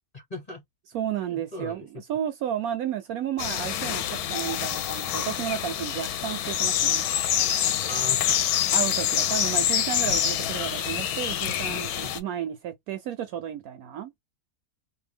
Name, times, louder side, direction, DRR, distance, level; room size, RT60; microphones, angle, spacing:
voice 1, 0.1-0.6 1.2-1.9 7.9-8.4 11.8-11.9, left 2 dB, 30° left, 0.9 m, -38 dB
voice 2, 0.9-7.0 8.7-14.1, right 10 dB, 70° right, 0.9 m, -32 dB
sound 1, 3.4-12.2, left 10 dB, 70° left, 1.0 m, -26 dB
2.7 x 2.3 x 3.3 m
omnidirectional pair, 1.8 m